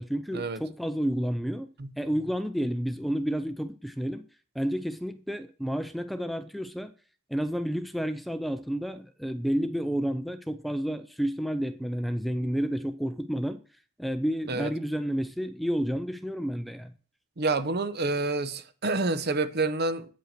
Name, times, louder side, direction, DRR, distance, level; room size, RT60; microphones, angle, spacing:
voice 1, 0.0-1.7 2.0-4.2 4.5-6.9 7.3-13.6 14.0-16.9, equal, ahead, 0.5 m, -30 dB
voice 2, 17.4-20.1, right 3 dB, 55° right, 0.8 m, -28 dB
8.9 x 5.4 x 6.6 m
head